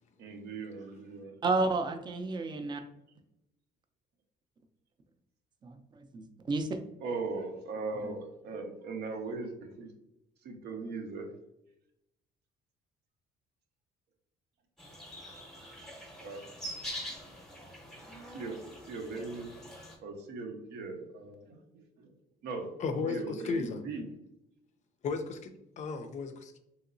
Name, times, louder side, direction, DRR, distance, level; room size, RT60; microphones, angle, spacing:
voice 1, 0.2-1.3 7.0-9.9 10.4-11.3 16.2-16.4 18.3-19.5 20.0-22.1 22.4-22.7 23.0-24.1, right 3 dB, 75° right, 3 dB, 0.7 m, -39 dB
voice 2, 1.4-2.8 5.6-6.7 8.0-8.1, right 3 dB, 25° right, 6 dB, 0.4 m, -31 dB
sound 1, 14.8-20.0, equal, 5° left, 0.7 m, -44 dB
voice 3, 22.8-23.9 25.0-26.6, left 4 dB, 45° left, 8 dB, 0.4 m, -35 dB
3.0 x 2.8 x 2.5 m, 0.85 s
cardioid pair, 110°, 17 cm